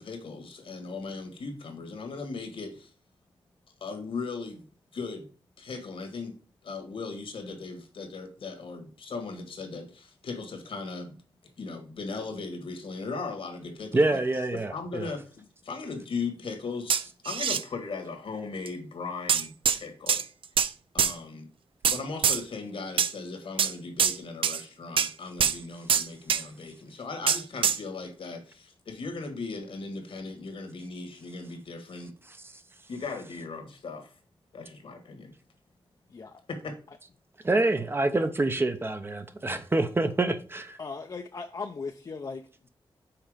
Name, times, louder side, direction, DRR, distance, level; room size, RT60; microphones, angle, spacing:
voice 1, 0.0-2.9 3.8-5.3 5.6-11.2 11.6-14.2 14.5-17.0 17.2-20.2 20.9-21.5 21.8-32.1 32.9-34.1 34.5-35.3 36.5-36.8, left 4 dB, 75° left, 1.6 m, -38 dB
voice 2, 13.9-15.1 37.4-40.8, right 2 dB, 25° right, 0.6 m, -26 dB
sound 1, 16.9-17.6 18.7-18.8 19.3-19.8 20.1-20.7 21.0-21.1 21.8-22.4 23.0-23.1 23.6-23.7 24.0-24.2 24.4-24.6 25.0-25.1 25.4-25.6 25.9-26.4 27.3-27.8, right 7 dB, 70° right, 0.4 m, -24 dB
voice 3, 36.1-36.4 40.8-42.4, left 4 dB, 40° left, 0.5 m, -37 dB
5.8 x 4.2 x 4.9 m
wide cardioid pair, 135°, 9 cm